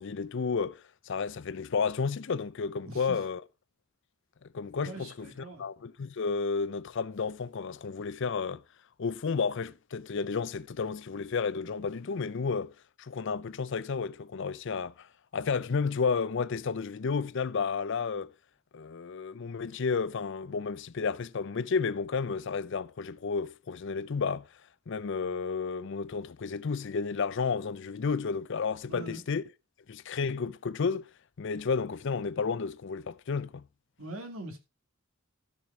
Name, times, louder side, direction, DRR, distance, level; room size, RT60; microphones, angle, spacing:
voice 1, 0.0-3.4 4.4-5.3 5.6-8.6 9.0-12.7 13.0-18.3 18.7-24.5 24.9-29.4 29.9-31.1 31.4-33.7, left 5 dB, 60° left, 0.5 m, -32 dB
voice 2, 4.8-5.7 28.9-29.2 34.0-34.6, right 2 dB, 85° right, 2.4 m, -42 dB
13.0 x 5.0 x 4.9 m
head